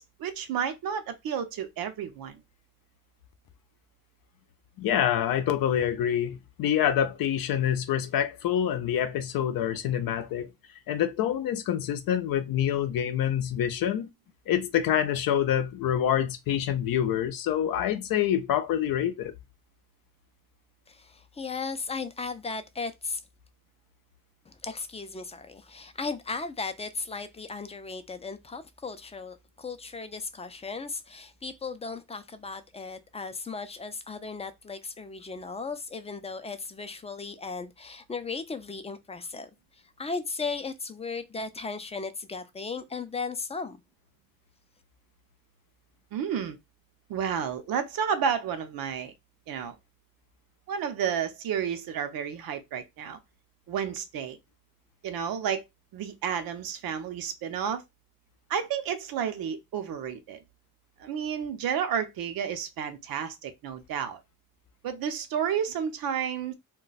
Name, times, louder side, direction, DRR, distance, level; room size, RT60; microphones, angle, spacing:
voice 1, 0.0-2.4 46.1-46.6 47.1-49.1 49.5-49.8 50.7-53.2 53.7-54.4 55.0-55.6 55.9-57.8 58.5-60.4 61.0-64.2 64.8-66.5, right 8 dB, 80° right, 0.7 m, -31 dB
voice 2, 4.8-10.5 10.9-14.1 14.5-19.3, left 10 dB, 75° left, 0.6 m, -26 dB
voice 3, 20.9-23.2 24.5-43.8, left 4 dB, 20° left, 0.4 m, -36 dB
2.2 x 2.2 x 3.9 m
cardioid pair, 95°, 34 cm